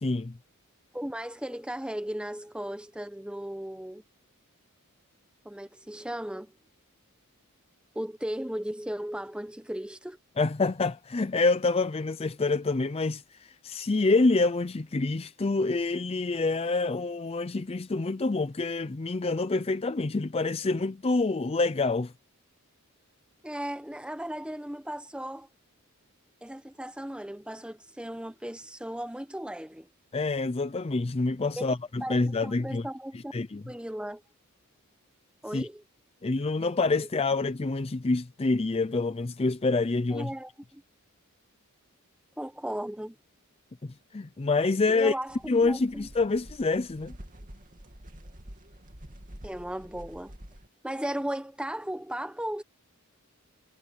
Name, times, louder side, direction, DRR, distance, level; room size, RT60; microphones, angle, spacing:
voice 1, 0.0-0.3 10.4-22.1 30.1-32.9 33.3-33.6 35.5-35.7 36.2-40.3 43.8-45.1 45.5-47.2, left 3 dB, 25° left, 0.5 m, -27 dB
voice 2, 0.9-4.0 5.4-6.5 7.9-10.2 23.4-25.5 26.4-29.9 31.6-31.7 32.0-32.2 32.4-33.3 33.6-34.2 35.4-35.8 40.1-40.8 42.4-43.2 44.9-46.1 49.4-50.3 50.8-52.6, right 1 dB, 5° right, 1.1 m, -36 dB
sound 1, 45.3-50.7, equal, 40° right, 2.6 m, -48 dB
head